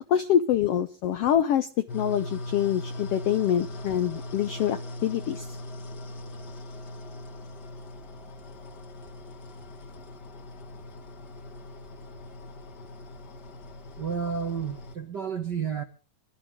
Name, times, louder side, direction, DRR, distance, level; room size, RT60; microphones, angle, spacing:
voice 1, 0.1-5.5, left 10 dB, 75° left, 12 dB, 1.4 m, -25 dB
sound 1, 1.9-14.9, left 1 dB, 35° left, 2.0 m, -40 dB
voice 2, 14.0-15.8, right 7 dB, 55° right, 5 dB, 1.2 m, -31 dB
24.0 x 12.0 x 3.7 m, 0.36 s
omnidirectional pair, 3.8 m